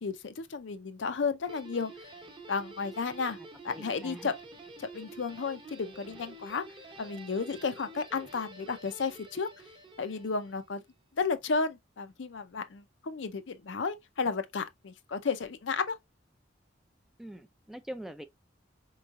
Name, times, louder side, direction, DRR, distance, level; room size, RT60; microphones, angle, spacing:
voice 1, 0.0-2.1 2.5-3.4 3.6-4.3 4.8-6.6 7.0-9.5 10.0-10.8 11.2-16.0, left 4 dB, 75° left, 0.5 m, -33 dB
Guitar, 1.5-10.8, right 2 dB, 30° right, 0.8 m, -49 dB
voice 2, 3.7-4.3 17.2-18.3, right 1 dB, ahead, 0.3 m, -43 dB
4.5 x 3.1 x 2.4 m
head